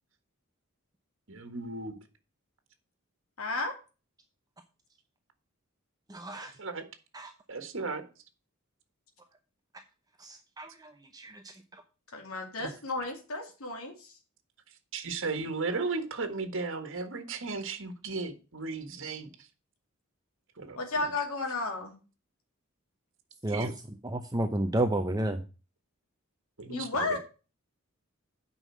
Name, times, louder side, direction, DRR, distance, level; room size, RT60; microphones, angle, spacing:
voice 1, 1.3-1.9 6.3-6.8 7.5-8.0 12.6-12.7 14.9-19.3 20.6-20.8 23.5-23.7 26.6-27.2, right 3 dB, 65° right, 7 dB, 1.6 m, -35 dB
voice 2, 3.4-3.7 12.1-14.1 20.8-21.9 26.7-27.2, left 3 dB, 85° left, 2 dB, 2.4 m, -33 dB
voice 3, 6.1-6.5 10.6-10.7 23.4-23.7 24.1-25.4, right 1 dB, 20° right, 6 dB, 0.8 m, -29 dB
8.9 x 5.6 x 6.1 m, 0.32 s
head